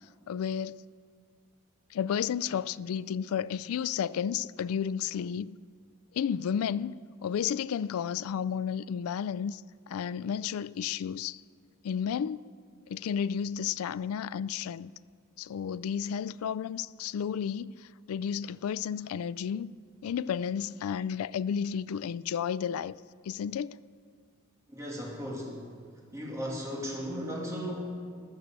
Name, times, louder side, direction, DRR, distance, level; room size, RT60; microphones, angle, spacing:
voice 1, 0.3-0.8 1.9-5.6 6.1-6.9 7.2-11.4 11.8-12.4 12.9-14.9 15.4-19.7 20.0-23.0 23.2-23.8, left 8 dB, 80° left, 0.3 m, -32 dB
voice 2, 24.7-25.6 26.1-27.8, equal, 15° right, 2.6 m, -36 dB
19.0 x 6.6 x 7.5 m
head